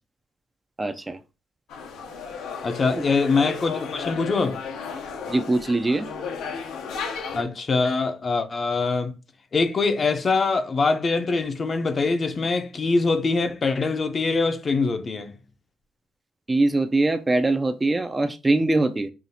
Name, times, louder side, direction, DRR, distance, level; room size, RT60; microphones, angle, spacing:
voice 1, 0.8-1.2 2.9-3.0 5.3-6.1 16.5-19.1, right 2 dB, 20° right, 0.4 m, -22 dB
sound 1, 1.7-7.4, left 5 dB, 85° left, 0.7 m, -34 dB
voice 2, 2.6-4.6 7.3-9.1 9.5-15.3, left 4 dB, 40° left, 0.6 m, -23 dB
5.6 x 2.4 x 2.7 m
cardioid pair, 90°, 0 cm